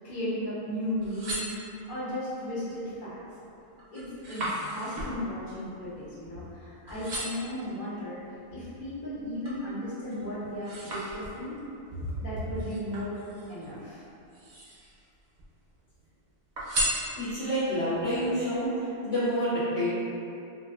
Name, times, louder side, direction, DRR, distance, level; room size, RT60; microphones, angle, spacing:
voice 1, 0.0-1.5 1.8-3.2 3.9-8.2 8.5-11.6 12.2-13.2 13.5-14.0, equal, 55° left, -10 dB, 0.9 m, -35 dB
sound 1, 0.9-2.1 2.7-3.1 3.5-6.6 6.9-7.6 8.2-9.7 10.1-11.6 12.5-13.7 14.2-15.0 15.3-16.1 16.6-17.6 18.1-18.2, equal, 70° right, 0.8 m, -36 dB
voice 2, 17.2-19.9, equal, 85° left, -14 dB, 1.2 m, -28 dB
2.5 x 2.4 x 2.3 m, 2.6 s
omnidirectional pair, 1.1 m